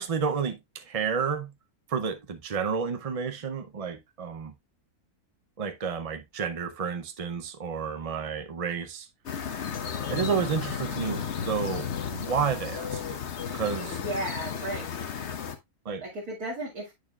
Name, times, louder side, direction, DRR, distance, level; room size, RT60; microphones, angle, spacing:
voice 1, 0.0-1.5 1.9-4.5 5.6-9.1 10.1-13.2 13.5-14.0 15.8-16.0, right 6 dB, 55° right, 0.4 m, -31 dB
sound 1, 9.3-15.6, left 7 dB, 55° left, 1.1 m, -33 dB
voice 2, 13.9-14.9 16.0-16.9, right 1 dB, 80° right, 2.8 m, -34 dB
8.8 x 6.5 x 2.3 m
omnidirectional pair, 1.6 m